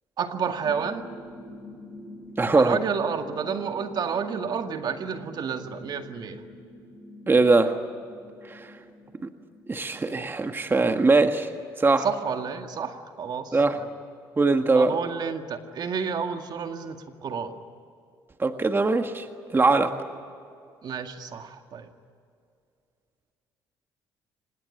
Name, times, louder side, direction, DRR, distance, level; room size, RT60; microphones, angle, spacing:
voice 1, 0.2-1.1 2.5-6.4 12.0-13.9 14.7-17.5 20.8-21.9, right 6 dB, 55° right, 6 dB, 2.0 m, -30 dB
sound 1, 0.6-11.0, left 1 dB, 70° right, 5.5 m, -46 dB
voice 2, 2.4-2.8 7.3-7.7 8.5-8.6 9.7-11.5 11.8-12.1 13.5-13.8 14.4-14.9 18.4-19.2 19.5-19.9, right 3 dB, 25° right, 7 dB, 1.7 m, -21 dB
25.5 x 21.0 x 10.0 m, 2.4 s
supercardioid pair, 70°, 9 cm